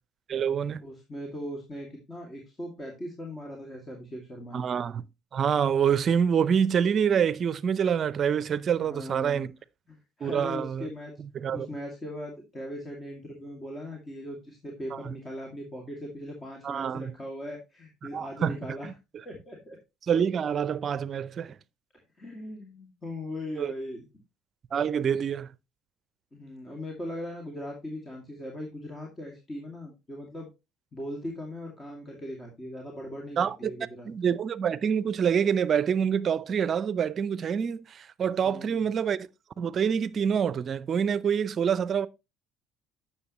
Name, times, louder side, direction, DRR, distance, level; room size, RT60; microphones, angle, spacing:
voice 1, 0.3-0.8 4.5-5.0 5.3-9.5 10.2-10.9 11.2-11.7 14.9-15.1 16.6-17.1 18.1-18.6 18.8-18.9 20.1-21.6 23.6-23.7 24.7-25.5 33.4-33.7 34.0-39.3 39.6-42.1, right 7 dB, 45° right, 0.6 m, -26 dB
voice 2, 0.8-4.7 8.8-9.5 9.9-11.1 11.5-18.9 19.2-19.8 22.1-24.0 26.3-30.5 30.9-34.1 38.4-38.8, left 1 dB, 25° left, 2.4 m, -39 dB
9.7 x 6.9 x 3.0 m
supercardioid pair, 80°, 0 cm